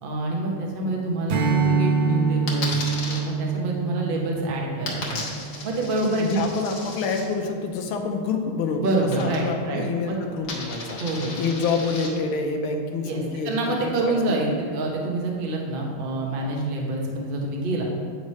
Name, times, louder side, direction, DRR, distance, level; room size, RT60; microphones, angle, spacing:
voice 1, 0.0-2.8 3.0-5.2 5.6-6.5 8.8-10.2 11.0-11.5 13.0-17.8, right 2 dB, 50° right, -1 dB, 0.6 m, -27 dB
Strum, 1.3-6.1, right 5 dB, 75° right, 1.5 m, -25 dB
Coin (dropping), 2.5-3.2 4.9-7.2 9.1-9.7 10.0-12.1, left 3 dB, 55° left, 1.6 m, -35 dB
voice 2, 6.2-8.8 9.2-11.0 11.4-14.4, left 4 dB, 80° left, 4 dB, 1.6 m, -27 dB
9.3 x 3.2 x 5.4 m, 2.1 s
omnidirectional pair, 2.3 m